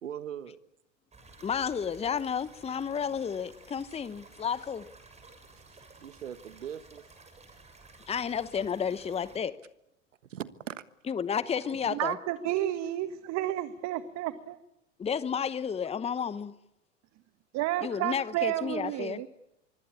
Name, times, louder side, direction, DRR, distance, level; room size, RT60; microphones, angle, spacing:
voice 1, 0.0-0.6 4.6-4.7 5.7-7.0 10.3-10.8 17.9-18.0, right 9 dB, 80° right, 1.4 m, -40 dB
sound 1, 1.1-9.4, right 3 dB, 15° right, 7.1 m, -54 dB
voice 2, 1.4-4.9 8.1-9.5 11.1-12.2 15.0-16.5 17.8-19.2, left 7 dB, 15° left, 1.0 m, -31 dB
voice 3, 11.9-14.6 17.5-19.3, right 14 dB, 45° right, 1.7 m, -31 dB
25.0 x 24.5 x 8.6 m
figure-of-eight pair, 85°, 37 cm